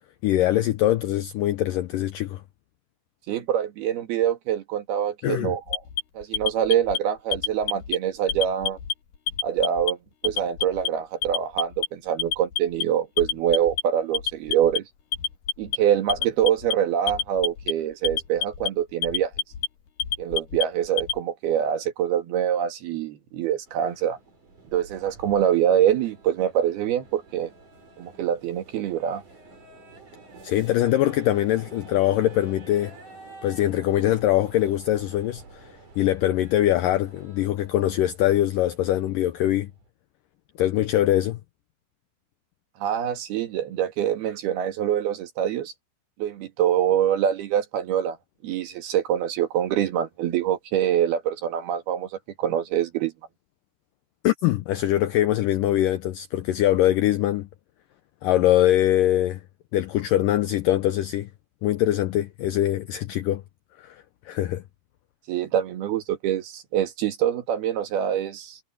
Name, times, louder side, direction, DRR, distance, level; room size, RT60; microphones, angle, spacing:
voice 1, 0.2-2.4 5.2-5.5 30.4-32.9 33.4-39.7 40.6-41.4 54.2-57.5 58.2-59.4 59.7-61.3 61.6-63.4 63.8-64.6, left 13 dB, 80° left, 1.9 m, -23 dB
voice 2, 3.3-5.8 6.2-8.8 9.4-10.0 10.2-14.9 15.6-19.3 20.2-24.2 24.7-27.5 28.0-29.2 42.8-45.7 46.2-48.2 48.4-52.1 52.4-53.1 65.3-68.6, right 10 dB, 70° right, 3.8 m, -25 dB
Alarm, 5.7-7.0 7.3-8.0 8.3-8.9 9.3-9.9 10.2-10.9 11.2-11.9 12.2-12.8 13.2-13.8 14.1-14.8 15.1-15.8 16.1-16.7 17.1-17.7 18.0-18.7 19.0-19.7 20.0-21.2, left 7 dB, 60° left, 3.2 m, -27 dB
sound 1, 23.7-39.9, right 3 dB, 50° right, 7.5 m, -49 dB
omnidirectional pair, 4.7 m